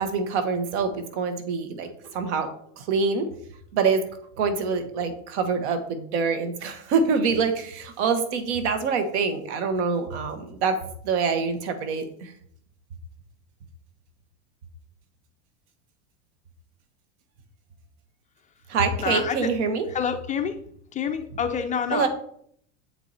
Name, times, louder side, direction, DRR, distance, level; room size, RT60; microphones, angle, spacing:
voice 1, 0.0-3.3 3.7-4.0 4.4-10.8 11.0-12.3 18.7-19.8 21.9-22.1, right 5 dB, 80° right, 8 dB, 1.4 m, -25 dB
voice 2, 19.0-19.5 19.9-20.5 20.9-22.1, left 7 dB, 20° left, 7 dB, 0.5 m, -27 dB
8.0 x 4.6 x 4.2 m, 0.65 s
supercardioid pair, 140°, 34 cm